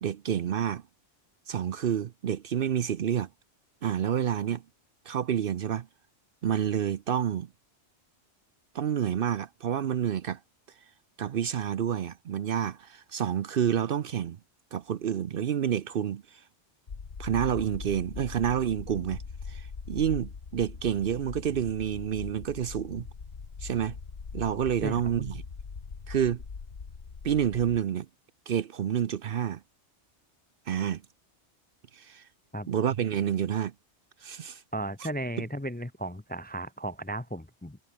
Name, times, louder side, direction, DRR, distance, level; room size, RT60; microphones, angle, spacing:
voice 1, 0.0-0.8 1.5-3.3 3.8-4.6 5.1-5.9 6.4-7.5 8.7-10.4 11.2-14.4 14.7-16.4 17.2-19.2 19.5-23.1 23.6-24.0 24.3-25.4 26.1-26.4 27.2-28.1 28.5-29.6 30.7-31.0 31.9-32.3 32.7-33.7 34.2-34.6, right 9 dB, 60° right, 0.8 m, -29 dB
sound 1, 16.9-27.8, left 5 dB, 60° left, 1.8 m, -41 dB
voice 2, 24.8-25.1 32.5-32.7 34.7-37.8, right 1 dB, 10° left, 0.6 m, -35 dB
omnidirectional pair, 1.2 m